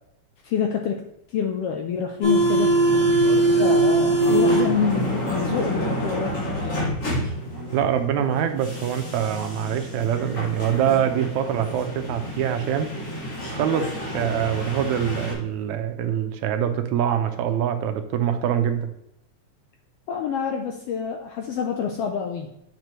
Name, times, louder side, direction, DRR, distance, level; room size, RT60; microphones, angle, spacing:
voice 1, 0.4-1.0 1.3-2.8 3.6-6.8 20.1-22.5, left 7 dB, 80° left, 4 dB, 1.4 m, -27 dB
sound 1, 2.2-15.3, right 1 dB, 55° left, 4.2 m, -24 dB
voice 2, 7.7-12.9 13.5-18.9, right 9 dB, 80° right, 7 dB, 2.0 m, -24 dB
9.1 x 5.8 x 3.1 m, 0.81 s
omnidirectional pair, 3.3 m